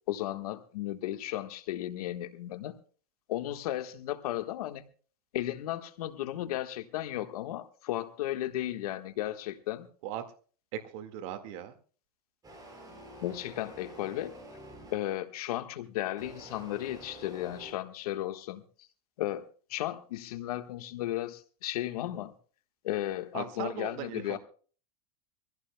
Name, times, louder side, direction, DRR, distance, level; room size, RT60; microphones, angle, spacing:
voice 1, 0.1-2.8 3.3-4.8 5.3-9.9 12.9-14.3 14.9-18.6 19.2-22.3 22.8-24.4, left 14 dB, 75° left, 1.5 m, -35 dB
voice 2, 10.7-11.8 23.3-24.4, right 10 dB, 60° right, 1.9 m, -38 dB
sound 1, 12.4-15.3 16.2-17.7, right 1 dB, 20° right, 6.2 m, -48 dB
23.5 x 15.5 x 2.2 m
supercardioid pair, 135°, 19 cm